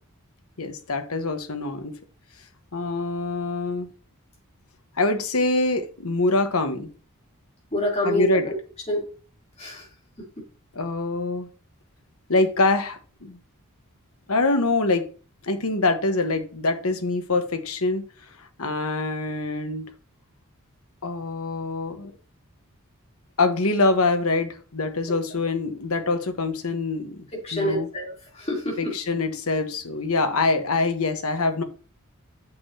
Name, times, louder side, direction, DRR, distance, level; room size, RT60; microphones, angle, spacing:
voice 1, 0.6-2.0 2.7-3.9 5.0-6.9 8.0-8.5 10.7-11.5 12.3-13.4 14.3-15.1 15.4-18.0 18.4-19.9 21.0-22.1 23.4-27.3 27.5-27.9 28.8-31.6, left 3 dB, 80° left, 1.3 m, -24 dB
voice 2, 7.7-8.5 8.9-9.0 9.6-9.8 27.3-28.9, left 1 dB, 30° left, 3.4 m, -27 dB
8.4 x 6.8 x 2.8 m
head